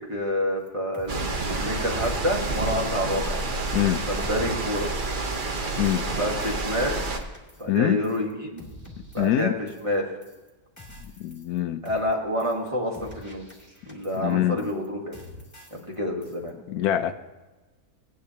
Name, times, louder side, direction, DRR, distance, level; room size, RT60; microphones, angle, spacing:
voice 1, 0.1-3.4 4.1-4.9 6.0-7.0 7.6-8.6 9.1-9.5 9.8-10.0 11.8-13.4 13.9-15.1 15.7-16.5, equal, 20° right, -1 dB, 1.3 m, -28 dB
sound 1, 0.7-0.8 0.9-1.2 1.5-1.8 2.0-3.4 3.7-3.9 4.2-4.5 4.8-5.0 5.3-5.6 5.8-6.1 6.4-7.8 8.0-8.3 8.6-9.9 10.2-10.5 10.8-11.6 11.8-12.1 12.4-12.7 12.9-14.3 14.6-14.9 15.1-15.9 16.2-16.5, left 1 dB, 10° left, 2.0 m, -48 dB
sound 2, 1.1-7.2, right 3 dB, 40° right, 0.9 m, -29 dB
voice 2, 7.7-8.0 9.2-9.5 11.0-11.8 14.2-14.7 16.7-17.1, left 13 dB, 75° left, 10 dB, 1.0 m, -24 dB
17.0 x 10.0 x 2.8 m, 1.1 s
omnidirectional pair, 1.6 m